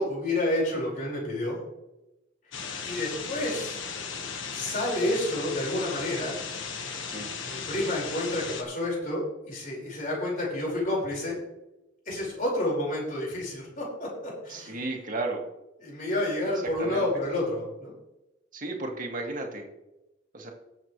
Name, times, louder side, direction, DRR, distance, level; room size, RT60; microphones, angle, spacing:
voice 1, 0.0-1.6 2.8-3.8 4.5-6.4 7.4-11.4 12.1-14.8 15.8-17.9, left 1 dB, 45° left, -4 dB, 4.7 m, -29 dB
sound 1, 2.5-8.6, left 5 dB, 90° left, 1.4 m, -36 dB
voice 2, 14.5-15.4 16.8-17.1 18.5-19.7 20.3-20.5, right 2 dB, 45° right, 1 dB, 2.1 m, -33 dB
19.0 x 7.8 x 3.2 m, 0.96 s
head